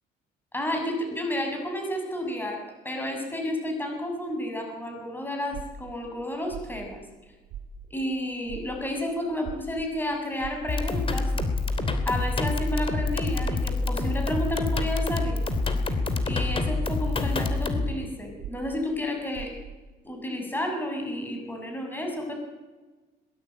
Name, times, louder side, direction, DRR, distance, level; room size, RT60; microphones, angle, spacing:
voice 1, 0.5-7.0 7.9-11.3 12.1-15.4 15.9-16.0 16.3-19.5 20.0-22.3, left 1 dB, 10° left, 2 dB, 6.9 m, -31 dB
sound 1, 5.5-8.2 8.4-16.0 16.4-19.9, right 8 dB, 80° right, 1.8 m, -42 dB
sound 2, 10.7-17.9, left 3 dB, 30° left, 3.1 m, -27 dB
21.5 x 20.0 x 8.9 m, 1.3 s
cardioid pair, 110°, 17 cm